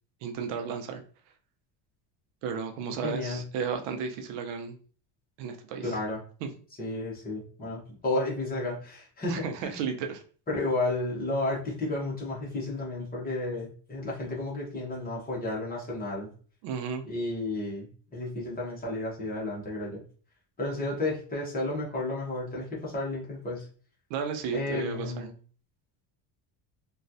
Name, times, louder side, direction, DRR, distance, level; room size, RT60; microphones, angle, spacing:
voice 1, 0.2-1.0 2.4-4.8 5.4-6.0 6.4-6.5 9.3-10.2 16.6-17.0 24.1-25.3, right 6 dB, 90° right, 6 dB, 0.7 m, -33 dB
voice 2, 3.0-3.4 5.8-6.2 6.8-9.8 10.5-16.3 17.1-17.9 18.1-20.0 20.6-23.6 24.5-25.3, left 2 dB, 20° left, -4 dB, 0.9 m, -32 dB
3.0 x 2.3 x 2.6 m, 0.41 s
cardioid pair, 155°, 48 cm